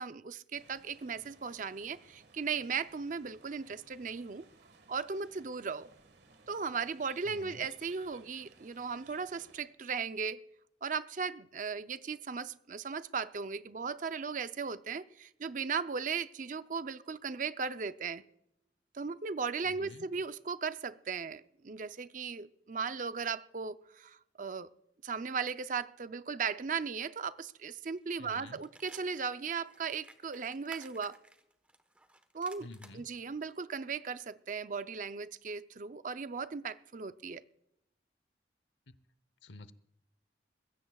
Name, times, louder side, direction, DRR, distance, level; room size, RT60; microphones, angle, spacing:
voice 1, 0.0-4.4 4.9-5.9 6.5-10.5 10.8-18.2 18.9-24.7 25.0-31.2 32.3-32.7 32.9-37.4, right 5 dB, 45° right, 0.5 m, -37 dB
sound 1, 0.5-9.7, right 3 dB, 70° right, 1.6 m, -61 dB
voice 2, 7.3-7.7 19.7-20.1 28.2-28.6 32.6-33.1 38.9-39.0 39.4-39.7, left 2 dB, 85° left, 0.8 m, -50 dB
sound 2, 27.7-28.0 28.3-33.0 33.4-33.5, right 1 dB, 5° right, 1.1 m, -56 dB
21.0 x 16.0 x 2.3 m
head